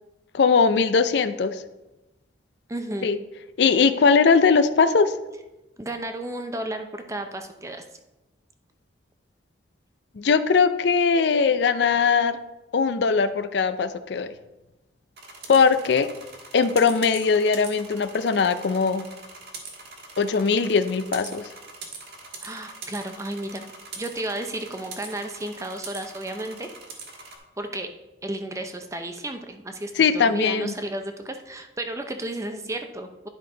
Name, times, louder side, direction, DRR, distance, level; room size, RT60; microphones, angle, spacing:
voice 1, 0.3-1.6 3.0-3.2 3.6-5.1 10.2-12.4 12.7-14.3 15.5-16.1 16.5-19.1 20.2-21.5 30.0-30.7, left 5 dB, 65° left, 11 dB, 0.4 m, -20 dB
voice 2, 2.7-3.1 5.8-7.8 22.4-23.6 24.0-26.7 27.6-27.9 28.2-33.3, right 1 dB, 15° right, 6 dB, 0.6 m, -33 dB
sound 1, 15.2-27.3, right 4 dB, 55° right, 1.5 m, -42 dB
10.5 x 5.2 x 3.8 m, 1.0 s
head